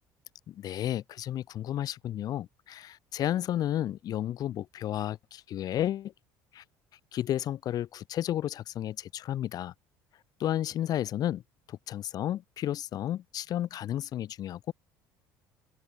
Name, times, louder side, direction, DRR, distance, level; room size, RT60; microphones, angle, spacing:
voice 1, 0.5-6.1 6.5-6.6 7.1-9.7 10.4-11.4 11.7-14.7, left 12 dB, 55° left, 3.4 m, -32 dB
open air
cardioid pair, 105°, 8 cm